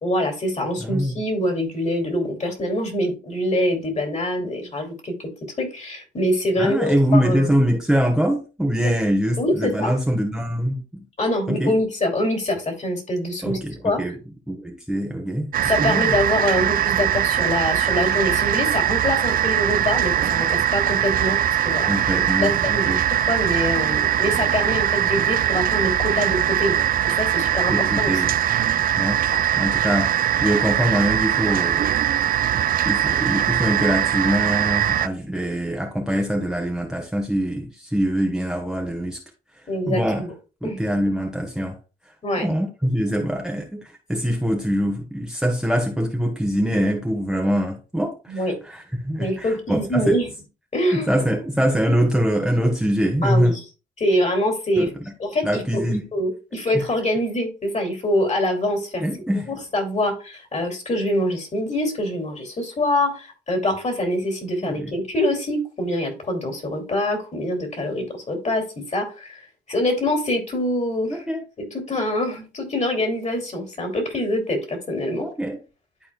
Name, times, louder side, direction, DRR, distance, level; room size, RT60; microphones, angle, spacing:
voice 1, 0.0-5.1 5.6-7.5 8.8-8.9 9.4-9.9 11.2-14.0 15.6-22.9 23.3-28.2 39.7-40.3 40.6-40.8 42.2-42.4 48.3-48.5 49.2-50.3 50.7-51.2 53.2-53.6 54.0-54.9 55.2-55.8 56.1-59.0 59.5-69.4 69.7-71.2 71.9-75.2, left 1 dB, 35° left, 3 dB, 2.8 m, -24 dB
voice 2, 0.8-1.2 6.6-11.0 11.5-11.7 13.4-14.2 14.5-15.5 15.8-16.2 21.9-23.0 27.7-28.3 29.0-29.2 29.6-31.9 32.5-39.2 39.9-40.2 40.6-41.8 42.4-50.2 50.9-53.5 54.8-54.9 55.4-56.0 56.7-56.8 59.0-59.6 64.6-64.9 67.1-67.2 71.1-71.4 75.2-75.6, equal, 5° right, 2 dB, 1.2 m, -23 dB
sound 1, 15.5-35.1, right 10 dB, 45° right, 0.4 m, -21 dB
11.5 x 4.2 x 2.3 m, 0.31 s
cardioid pair, 90°, 20 cm